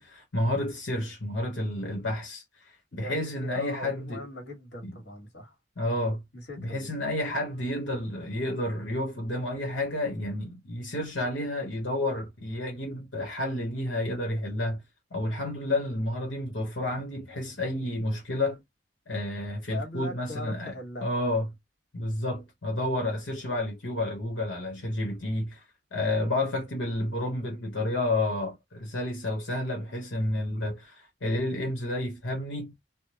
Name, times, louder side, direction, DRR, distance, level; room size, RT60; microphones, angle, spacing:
voice 1, 0.0-4.2 4.8-4.9 5.8-6.2 6.6-14.8 15.1-18.6 19.1-20.7 21.0-21.5 21.9-25.6 25.9-32.7, left 1 dB, 85° left, 1.2 m, -30 dB
voice 2, 2.9-5.6 6.3-6.9 19.7-21.1, left 1 dB, 65° left, 1.7 m, -40 dB
3.5 x 2.2 x 2.9 m
head